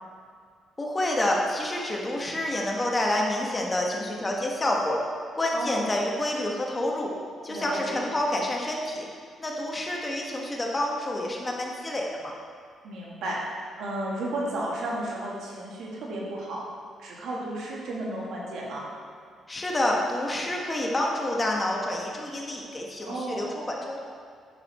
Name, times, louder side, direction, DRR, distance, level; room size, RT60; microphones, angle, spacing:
voice 1, 0.8-5.0 5.3-7.1 7.4-9.1 9.4-12.3 19.5-24.0, left 1 dB, 20° left, -1 dB, 1.6 m, -28 dB
voice 2, 5.5-5.9 7.5-8.0 12.8-13.4 13.8-16.6 17.0-18.9 23.1-23.5, right 1 dB, 75° right, -4 dB, 2.3 m, -33 dB
9.8 x 6.8 x 4.5 m, 2.1 s
cardioid pair, 90°, 0 cm